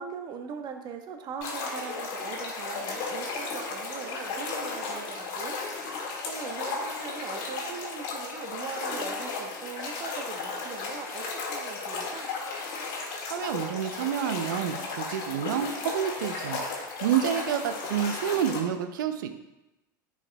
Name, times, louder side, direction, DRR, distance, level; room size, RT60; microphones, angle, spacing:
voice 1, 0.0-5.6 6.2-12.3, right 6 dB, 40° right, 5 dB, 1.0 m, -40 dB
sound 1, 1.4-18.6, left 4 dB, 55° left, 1.8 m, -34 dB
voice 2, 13.3-19.3, right 9 dB, 75° right, 9 dB, 0.6 m, -29 dB
11.0 x 4.8 x 2.3 m, 0.97 s
hypercardioid pair, 90°, 11 cm